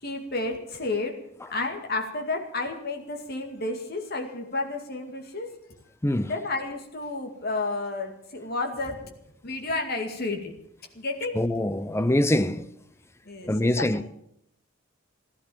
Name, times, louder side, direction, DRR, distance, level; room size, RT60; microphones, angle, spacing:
voice 1, 0.0-1.2 1.5-5.5 6.2-9.1 9.4-10.5 10.9-11.4 13.3-14.1, left 2 dB, 45° left, 2.2 m, -31 dB
voice 2, 11.4-12.7 13.5-14.1, left 1 dB, 10° left, 0.5 m, -24 dB
15.5 x 12.5 x 7.1 m
head